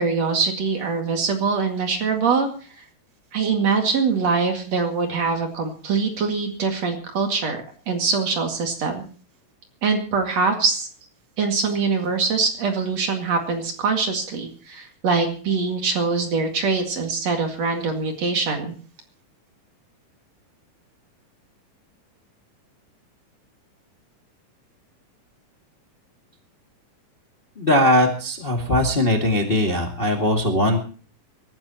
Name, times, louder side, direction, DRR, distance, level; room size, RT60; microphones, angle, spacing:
voice 1, 0.0-2.5 2.7-2.8 3.3-9.0 9.8-10.9 11.4-18.8, right 4 dB, 50° right, 3 dB, 3.1 m, -23 dB
voice 2, 27.6-30.8, left 1 dB, 20° left, 1 dB, 1.6 m, -20 dB
24.5 x 14.0 x 2.9 m, 0.39 s
omnidirectional pair, 4.0 m